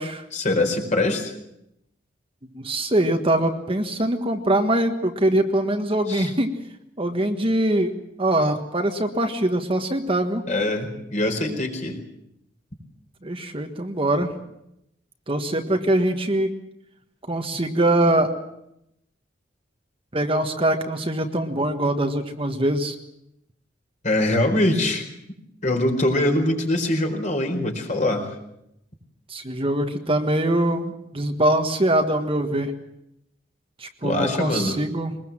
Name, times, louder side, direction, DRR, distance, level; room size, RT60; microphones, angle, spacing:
voice 1, 0.3-1.3 6.1-6.3 10.5-12.0 24.0-25.1 25.6-28.3 34.0-34.7, left 1 dB, 40° left, 3 dB, 4.6 m, -23 dB
voice 2, 2.5-6.5 7.0-7.9 8.2-10.4 13.2-14.3 15.3-16.5 17.3-18.3 20.1-22.9 29.3-32.7 33.8-35.1, right 1 dB, 30° right, 5 dB, 1.5 m, -23 dB
23.0 x 20.5 x 7.5 m, 0.80 s
head